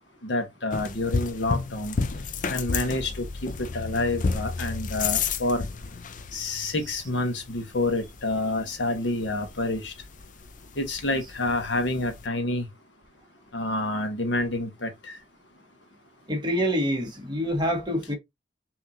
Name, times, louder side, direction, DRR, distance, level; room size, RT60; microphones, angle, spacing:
voice 1, 0.2-2.0 2.5-5.6 6.3-9.9 10.8-12.7 13.5-15.2, left 2 dB, 80° left, 1.3 m, -28 dB
sound 1, 0.7-12.3, left 4 dB, 45° left, 0.5 m, -33 dB
voice 2, 16.3-18.1, equal, 25° right, 1.4 m, -27 dB
5.8 x 3.0 x 2.7 m
head